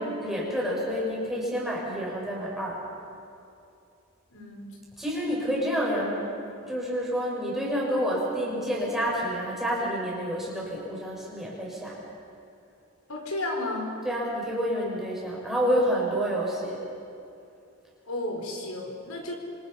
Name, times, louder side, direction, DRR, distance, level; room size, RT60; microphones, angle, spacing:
voice 1, 0.0-2.8 5.0-6.3 6.6-12.0 14.0-16.8, equal, ahead, -5 dB, 7.0 m, -28 dB
voice 2, 4.3-4.8 13.1-14.0 18.1-19.3, left 2 dB, 85° left, 2 dB, 4.4 m, -33 dB
29.5 x 26.0 x 5.9 m, 2.6 s
head